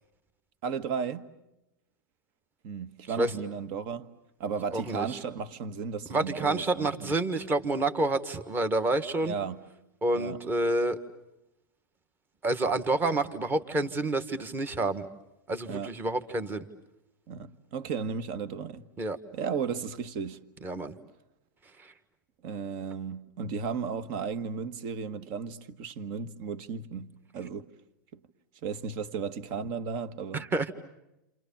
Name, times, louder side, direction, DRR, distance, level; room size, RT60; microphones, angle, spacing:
voice 1, 0.6-1.3 2.6-4.1 4.4-7.1 9.2-9.6 10.1-10.4 15.7-15.9 17.3-18.9 19.3-20.4 22.4-27.7 28.1-28.2 28.6-30.5, right 6 dB, 45° right, 1.4 m, -35 dB
voice 2, 4.7-5.2 6.1-9.3 10.0-11.0 12.4-15.1 15.5-16.7 19.0-19.2 20.6-20.9 21.8-21.9 30.3-30.7, right 2 dB, 20° right, 1.6 m, -28 dB
29.0 x 27.5 x 7.2 m
hypercardioid pair, 130°, 11 cm